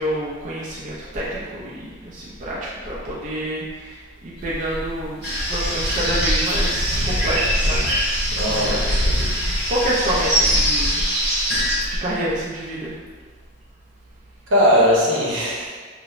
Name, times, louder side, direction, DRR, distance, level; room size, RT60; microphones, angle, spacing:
voice 1, 0.0-2.6 2.9-5.2 5.5-7.9 8.3-11.1 12.0-12.9, right 1 dB, 40° right, -7 dB, 0.4 m, -28 dB
sound 1, 4.4-12.0, equal, 60° left, 0.4 m, -26 dB
sound 2, 5.2-11.8, equal, 55° right, 0.9 m, -24 dB
voice 2, 8.4-8.8 14.5-15.8, equal, 85° right, -6 dB, 0.8 m, -18 dB
3.0 x 2.0 x 2.4 m, 1.5 s
head